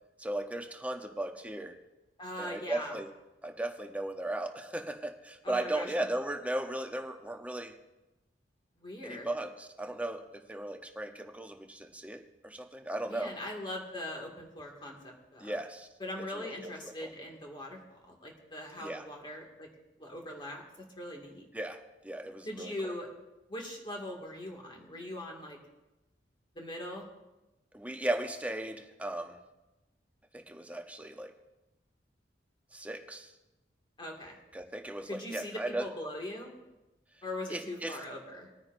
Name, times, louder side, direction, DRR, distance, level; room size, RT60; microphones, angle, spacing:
voice 1, 0.2-1.8 2.4-3.1 3.4-7.8 9.0-13.4 15.4-15.9 16.3-17.1 18.8-19.1 21.5-22.9 27.7-29.4 30.3-31.3 32.7-33.3 34.5-35.9 37.5-38.0, right 1 dB, 10° right, 5 dB, 0.8 m, -37 dB
voice 2, 2.2-2.9 5.4-5.9 8.8-9.3 13.1-15.5 16.0-19.7 20.0-20.6 21.0-21.4 22.5-23.1 23.5-25.6 26.6-27.0 34.0-34.4 35.1-36.5 37.2-38.5, left 1 dB, 25° left, 0 dB, 2.1 m, -41 dB
20.5 x 9.6 x 2.6 m, 1.0 s
head